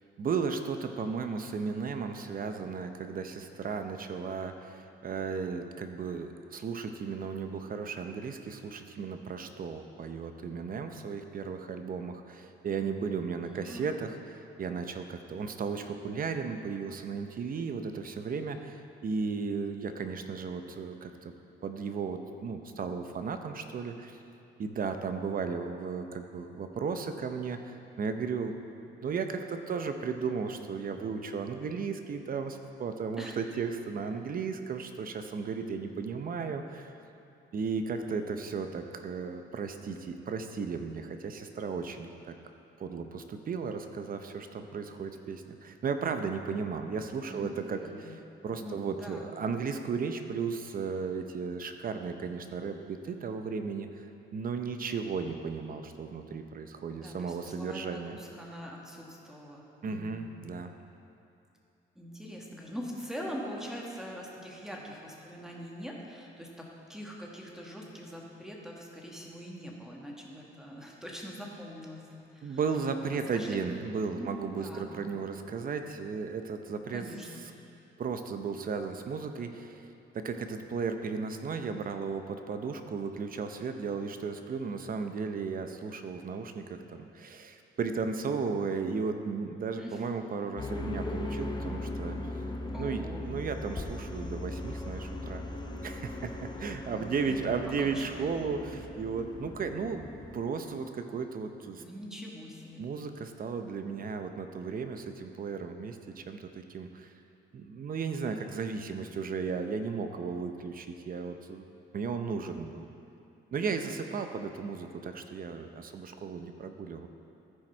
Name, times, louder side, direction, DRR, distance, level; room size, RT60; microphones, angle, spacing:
voice 1, 0.2-21.3 21.6-24.2 24.6-28.6 29.0-36.9 37.5-42.4 42.8-48.2 48.4-58.2 59.8-60.7 72.4-77.0 78.0-79.9 80.1-92.2 92.8-95.4 95.8-101.8 102.8-107.1 107.5-111.7 111.9-112.9 113.5-117.1, right 5 dB, 45° right, 7 dB, 0.7 m, -35 dB
voice 2, 13.4-13.9 33.2-33.4 47.3-48.2 48.6-49.3 56.9-60.2 61.9-72.0 72.3-72.6 73.1-73.6 74.1-74.9 76.9-77.4 89.8-90.0 92.7-93.2 96.9-98.6 101.8-102.9, equal, 5° right, -2 dB, 1.6 m, -43 dB
sound 1, 90.6-100.4, left 2 dB, 20° left, 0.9 m, -38 dB
14.0 x 5.0 x 4.4 m, 2.7 s
cardioid pair, 90°, 20 cm